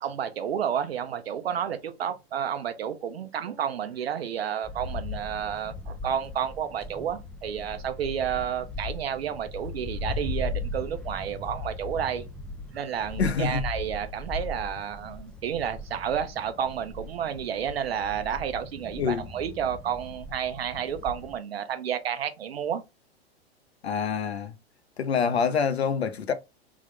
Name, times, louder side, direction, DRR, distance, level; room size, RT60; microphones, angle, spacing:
voice 1, 0.0-12.3 12.7-22.8, right 8 dB, 70° right, 0.7 m, -31 dB
sound 1, 4.6-21.4, left 2 dB, 5° left, 0.3 m, -38 dB
voice 2, 13.2-13.7 19.0-19.3 23.8-24.5 25.0-26.3, left 6 dB, 80° left, 0.7 m, -26 dB
3.6 x 2.5 x 3.4 m
figure-of-eight pair, 100°, 32 cm